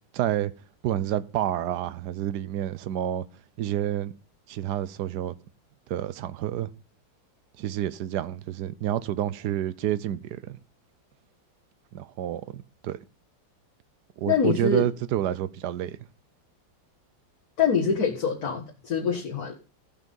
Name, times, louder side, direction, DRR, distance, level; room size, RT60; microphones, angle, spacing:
voice 1, 0.1-0.5 0.8-3.2 3.6-4.1 4.5-5.4 5.9-6.7 7.6-10.6 11.9-13.0 14.2-16.0, right 11 dB, 65° right, 1.1 m, -29 dB
voice 2, 14.3-14.8 17.6-19.5, left 6 dB, 50° left, 2.1 m, -25 dB
15.0 x 5.9 x 5.3 m
omnidirectional pair, 2.1 m